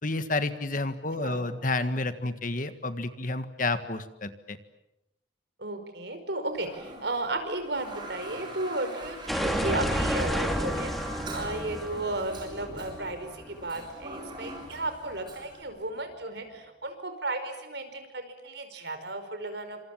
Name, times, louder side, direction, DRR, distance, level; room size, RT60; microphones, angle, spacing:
voice 1, 0.0-4.6, left 2 dB, 45° left, 10 dB, 1.7 m, -30 dB
voice 2, 1.2-1.5 5.6-10.9 11.3-19.8, right 2 dB, 60° right, 8 dB, 5.2 m, -34 dB
Toilet flush, 6.5-15.6, right 1 dB, 25° right, 7.8 m, -44 dB
sound 1, 9.3-14.0, equal, ahead, 3.1 m, -31 dB
28.0 x 27.0 x 7.5 m, 0.89 s
head